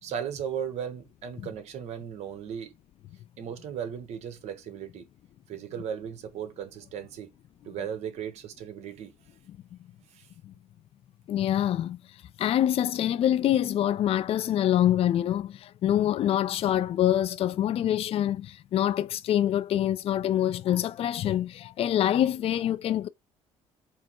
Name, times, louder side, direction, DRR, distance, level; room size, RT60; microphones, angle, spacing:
voice 1, 0.0-2.7 3.4-5.1 5.5-7.3 7.6-9.1 10.1-10.3, right 8 dB, 70° right, 1.0 m, -36 dB
voice 2, 11.3-12.0 12.4-23.1, left 11 dB, 55° left, 0.4 m, -25 dB
4.4 x 2.0 x 4.4 m
cardioid pair, 85°, 12 cm